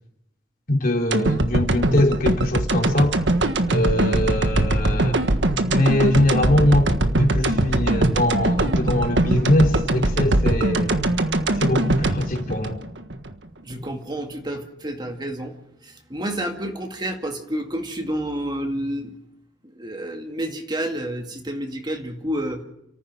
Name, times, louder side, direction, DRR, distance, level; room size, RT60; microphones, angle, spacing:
voice 1, 0.7-3.2 3.7-5.2 5.7-11.0 11.6-12.8, left 1 dB, 50° left, 3.3 m, -22 dB
sound 1, 1.1-13.3 13.7-13.8, right 1 dB, 75° right, 1.5 m, -21 dB
voice 2, 13.6-15.5 15.8-19.1 19.8-22.6, right 1 dB, 25° right, 2.2 m, -29 dB
30.0 x 14.5 x 6.2 m
head